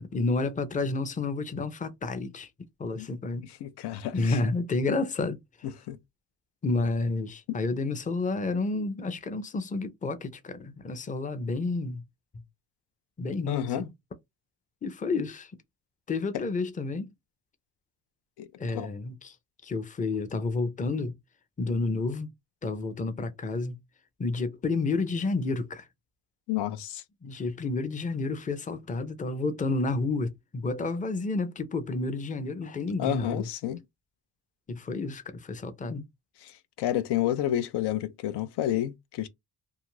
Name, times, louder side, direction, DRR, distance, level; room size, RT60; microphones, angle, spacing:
voice 1, 0.0-2.5 2.8-3.5 4.1-5.4 6.6-12.0 13.2-13.9 14.8-15.5 16.1-17.1 18.6-19.4 19.6-21.2 21.6-22.3 22.6-23.8 24.2-25.9 27.2-33.5 34.7-36.1, left 3 dB, 20° left, 0.5 m, -30 dB
voice 2, 3.4-4.4 5.6-6.0 13.5-13.8 16.3-16.4 18.4-18.9 26.5-27.0 33.0-33.8 36.4-39.3, left 12 dB, 85° left, 0.5 m, -30 dB
2.5 x 2.4 x 3.0 m
cardioid pair, 100°, 40 cm